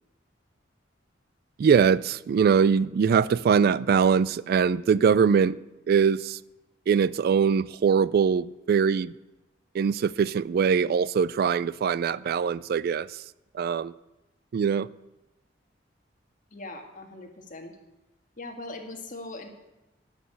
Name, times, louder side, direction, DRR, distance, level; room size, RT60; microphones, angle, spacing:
voice 1, 1.6-5.6 5.9-6.4 6.9-9.1 9.7-13.2 13.5-13.9 14.5-14.9, right 6 dB, 55° right, 0.3 m, -22 dB
voice 2, 16.5-17.8 18.4-19.5, left 2 dB, 45° left, 1.7 m, -40 dB
11.0 x 6.6 x 9.3 m
head